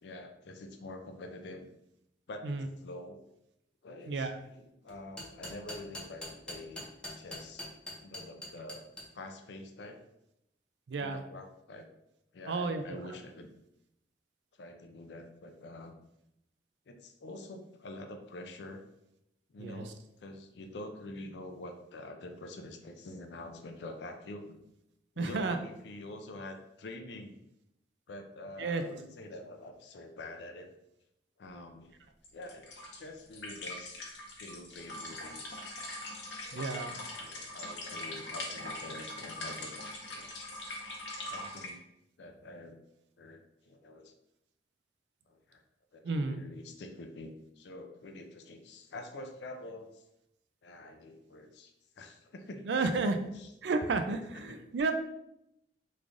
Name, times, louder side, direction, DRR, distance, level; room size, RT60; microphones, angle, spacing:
voice 1, 0.0-1.7 2.3-3.2 3.8-6.9 7.1-7.6 8.0-8.8 9.1-10.1 11.0-11.9 12.3-13.5 14.6-16.0 16.9-18.8 19.5-24.6 25.2-27.3 28.1-30.7 31.4-31.9 32.3-34.0 34.4-35.5 36.9-40.3 41.2-41.8 42.2-42.8 43.2-44.1 45.3-45.6 45.9-50.0 50.6-52.7 53.4-53.5 54.3-54.6, left 2 dB, 70° left, 5 dB, 0.4 m, -46 dB
voice 2, 4.1-4.4 10.9-11.2 12.5-13.0 19.6-19.9 25.2-25.6 28.6-28.8 36.5-37.0 46.0-46.4 52.6-53.2 53.6-54.9, right 3 dB, 75° right, 7 dB, 0.4 m, -32 dB
sound 1, 4.9-9.0, left 1 dB, 5° left, 0.6 m, -42 dB
sound 2, 32.2-41.7, left 1 dB, 90° left, 0.8 m, -42 dB
3.1 x 2.5 x 3.6 m, 0.82 s
head